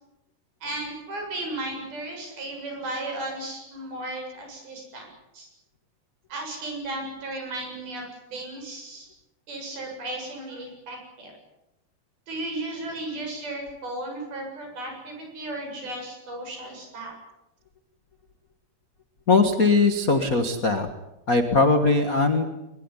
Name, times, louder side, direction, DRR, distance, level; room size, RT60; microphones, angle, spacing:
voice 1, 0.6-5.1 5.3-5.5 6.3-8.0 8.3-9.1 9.5-11.3 12.3-17.1, right 2 dB, 70° right, 2 dB, 9.4 m, -35 dB
voice 2, 19.3-20.9 21.3-22.4, left 3 dB, 75° left, 7 dB, 0.8 m, -20 dB
22.5 x 21.5 x 9.9 m, 0.95 s
omnidirectional pair, 4.5 m